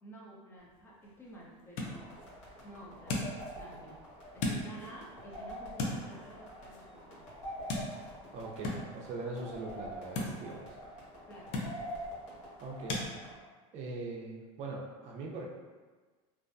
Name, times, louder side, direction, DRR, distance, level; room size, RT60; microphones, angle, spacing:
voice 1, 0.0-2.2 2.6-4.0 4.3-7.3 11.3-11.5, right 1 dB, 15° left, -5 dB, 0.6 m, -51 dB
sound 1, 0.6-13.1, left 2 dB, 65° left, 0.5 m, -41 dB
sound 2, 1.8-13.4, equal, 80° left, 1.2 m, -46 dB
voice 2, 8.3-10.8 12.6-13.0 13.7-15.5, right 3 dB, 45° right, -1 dB, 0.5 m, -41 dB
2.6 x 2.1 x 2.5 m, 1.4 s
supercardioid pair, 125°, 16 cm